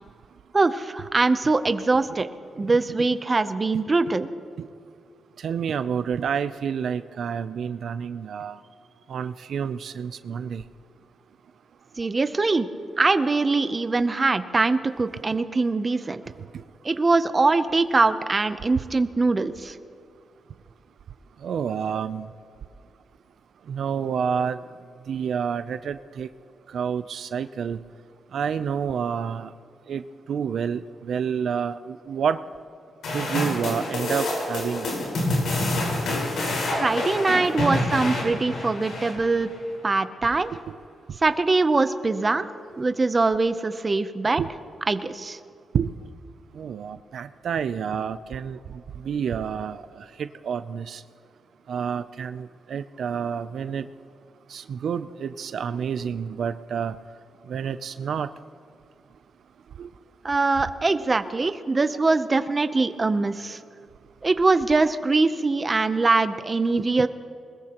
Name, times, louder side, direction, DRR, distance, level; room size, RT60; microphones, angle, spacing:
voice 1, 0.5-2.3 2.6-4.3 12.0-12.7 13.0-16.2 16.8-19.7 36.8-39.5 39.8-40.5 41.2-42.5 42.8-44.4 44.9-45.4 60.2-63.6 64.2-67.1, right 3 dB, 25° right, 11 dB, 0.6 m, -22 dB
voice 2, 5.4-8.6 9.1-10.6 16.5-16.6 21.4-22.3 23.7-24.6 25.1-26.3 26.7-27.8 28.3-29.5 29.9-32.4 33.1-34.9 40.5-40.8 41.1-41.2 44.4-44.5 45.7-45.9 46.5-51.0 51.7-53.9 54.5-57.0 57.5-58.3 59.8-59.9, right 7 dB, 70° right, 12 dB, 0.4 m, -29 dB
sound 1, 33.0-39.6, left 2 dB, 80° left, 4.6 m, -27 dB
21.5 x 21.0 x 3.0 m, 2.4 s
wide cardioid pair, 135°, 0 cm